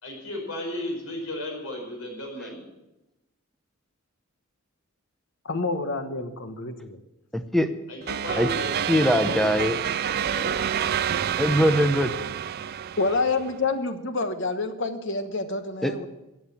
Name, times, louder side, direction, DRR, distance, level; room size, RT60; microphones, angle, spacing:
voice 1, 0.0-2.7 7.9-9.4 10.2-10.5, left 1 dB, 75° left, 1 dB, 4.9 m, -34 dB
voice 2, 5.5-7.0 12.6-12.7 13.0-16.1, left 3 dB, 55° left, 8 dB, 1.1 m, -28 dB
voice 3, 7.3-7.7 8.4-8.5 8.9-9.8 11.4-12.1 15.8-15.9, equal, ahead, 8 dB, 0.7 m, -21 dB
sound 1, 8.1-13.5, right 8 dB, 45° right, 0.4 m, -28 dB
14.5 x 8.1 x 7.2 m, 0.95 s
head